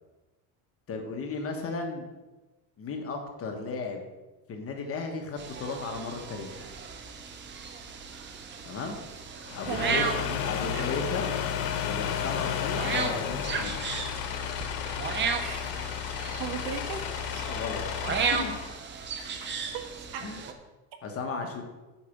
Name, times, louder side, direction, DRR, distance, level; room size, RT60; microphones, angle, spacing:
voice 1, 0.9-2.1 2.8-4.1 4.5-6.8 8.6-9.0 9.5-10.0 10.4-11.3 11.8-13.8 17.5-18.5 20.2-20.4 21.0-21.6, left 4 dB, 30° left, 3 dB, 1.2 m, -35 dB
sound 1, 5.4-20.5, right 6 dB, 25° right, 0.8 m, -35 dB
sound 2, 9.4-18.8, left 10 dB, 75° left, 1.1 m, -33 dB
voice 2, 9.7-11.0 15.4-15.9 16.4-17.5 19.2-20.3, right 7 dB, 55° right, 6 dB, 1.5 m, -38 dB
sound 3, 12.0-17.4, left 5 dB, 60° left, 2.5 m, -47 dB
8.5 x 4.8 x 7.0 m, 1.1 s
supercardioid pair, 140°, 47 cm